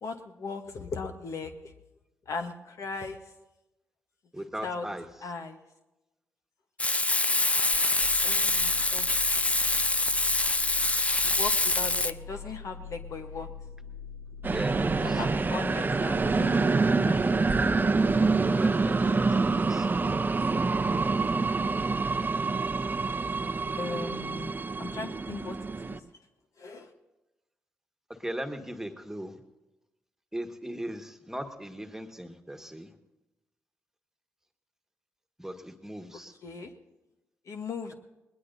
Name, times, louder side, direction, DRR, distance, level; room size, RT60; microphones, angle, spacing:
voice 1, 0.0-1.5 2.3-3.2 4.6-4.9 5.2-5.6 8.2-9.4 11.2-13.5 15.2-16.8 17.0-17.3 23.8-25.6 25.9-26.0 26.6-26.9 36.1-36.7 37.5-37.9, left 4 dB, 60° left, 6 dB, 1.1 m, -38 dB
voice 2, 4.3-5.0 7.3-7.4 9.6-9.7 14.5-15.2 18.5-19.9 28.2-29.4 30.3-32.9 35.4-36.3, right 1 dB, 5° right, 6 dB, 1.5 m, -38 dB
Frying (food), 6.8-12.1, left 2 dB, 20° left, 0.5 m, -25 dB
sound 1, 8.0-15.3, left 6 dB, 75° left, 1.4 m, -43 dB
sound 2, 14.4-26.0, right 3 dB, 30° right, 0.7 m, -26 dB
20.0 x 19.5 x 2.7 m, 1.0 s
hypercardioid pair, 45°, 6 cm